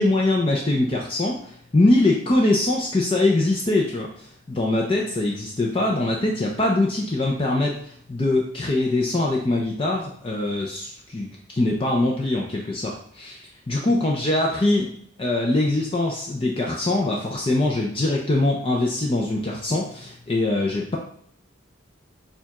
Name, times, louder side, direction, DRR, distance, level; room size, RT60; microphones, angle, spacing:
voice 1, 0.0-14.9 15.2-21.0, left 2 dB, 30° left, -1 dB, 0.5 m, -23 dB
6.6 x 2.3 x 2.9 m, 0.65 s
head